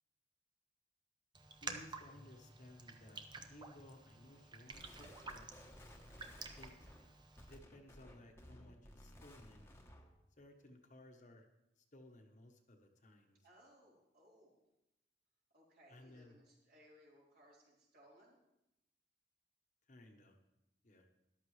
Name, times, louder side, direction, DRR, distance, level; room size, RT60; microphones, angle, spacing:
Raindrop, 1.3-7.6, right 4 dB, 25° right, 0.8 m, -51 dB
voice 1, 1.5-3.2 3.5-5.5 6.5-6.7 7.4-9.7 10.4-11.5 11.8-13.4 15.9-16.4 19.9-20.4 20.8-21.1, left 1 dB, 45° left, 4 dB, 1.1 m, -59 dB
sound 1, 4.7-10.2, equal, 15° left, 1.1 m, -58 dB
voice 2, 13.4-14.6 15.5-18.4, equal, 60° right, -5 dB, 4.1 m, -65 dB
13.5 x 11.5 x 3.3 m, 0.91 s
head